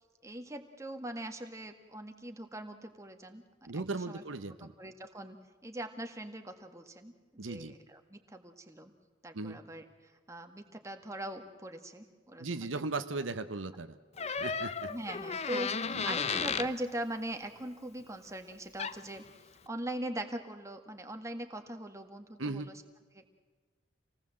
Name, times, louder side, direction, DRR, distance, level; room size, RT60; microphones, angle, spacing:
voice 1, 0.2-3.4 3.7-4.2 4.6-5.4 5.6-7.1 7.4-8.9 9.2-9.9 10.3-12.8 14.9-19.2 19.7-22.8 23.1-23.3, right 1 dB, 15° right, 5 dB, 1.8 m, -41 dB
voice 2, 3.7-4.7 7.4-7.7 9.3-9.6 12.4-14.0 14.3-14.9 15.9-16.0 22.4-22.8, right 3 dB, 85° right, 10 dB, 1.1 m, -37 dB
Door, 14.2-16.7 18.5-18.6 18.8-19.2, left 5 dB, 35° left, 0.7 m, -34 dB
27.0 x 18.5 x 7.7 m, 1.4 s
head